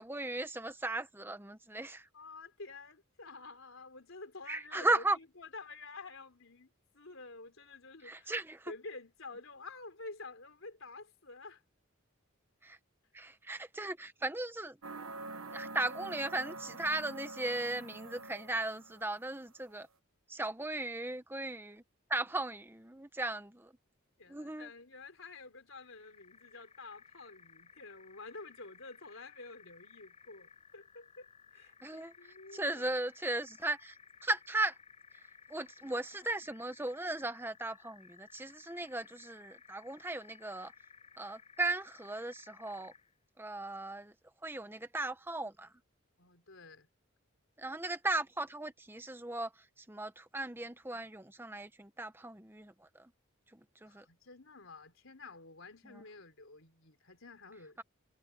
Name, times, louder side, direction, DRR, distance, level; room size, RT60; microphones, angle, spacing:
voice 1, 0.0-2.0 4.5-5.2 8.0-8.7 12.6-12.8 13.1-14.8 15.2-19.9 20.3-21.8 22.1-23.7 24.3-24.7 31.8-32.1 32.5-33.9 34.2-34.7 35.5-40.7 41.2-42.9 43.4-44.1 44.4-45.7 47.6-49.5 49.9-52.7 53.5-54.0, right 2 dB, 10° right, 1.0 m, -37 dB
voice 2, 2.1-6.7 6.9-11.6 24.2-33.0 46.2-46.9 53.8-57.8, left 3 dB, 75° left, 3.6 m, -50 dB
sound 1, 14.8-19.2, right 3 dB, 85° right, 1.1 m, -46 dB
sound 2, 25.8-43.1, left 6 dB, 30° left, 5.9 m, -59 dB
head